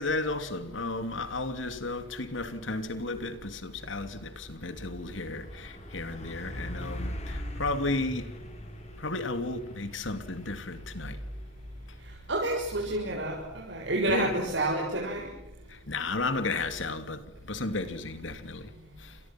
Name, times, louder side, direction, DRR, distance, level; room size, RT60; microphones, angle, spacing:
voice 1, 0.0-8.4 9.0-11.2 14.1-14.5 15.7-18.7 19.0-19.2, left 2 dB, 75° left, 2.9 m, -33 dB
Truck, 3.6-16.1, equal, 35° left, 6.2 m, -43 dB
voice 2, 12.3-15.3, right 1 dB, 65° right, 6.6 m, -29 dB
30.0 x 27.0 x 6.2 m
head